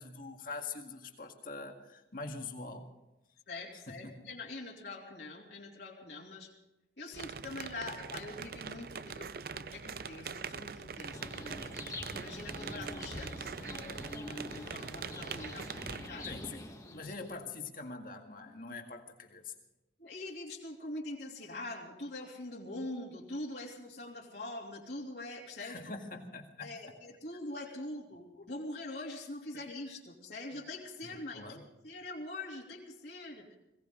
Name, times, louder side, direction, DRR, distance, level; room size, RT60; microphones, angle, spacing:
voice 1, 0.0-3.0 3.9-4.2 16.2-19.5 25.6-26.7 31.0-31.6, left 3 dB, 50° left, 3 dB, 1.9 m, -44 dB
voice 2, 3.5-6.5 7.0-11.6 12.1-16.3 16.8-17.1 20.0-25.8 26.6-33.6, left 2 dB, 65° left, -3 dB, 3.0 m, -44 dB
sound 1, 7.1-16.1, right 6 dB, 55° right, 0.5 m, -43 dB
sound 2, 11.1-17.4, left 1 dB, 20° left, 1.6 m, -45 dB
21.5 x 17.5 x 3.8 m, 0.94 s
head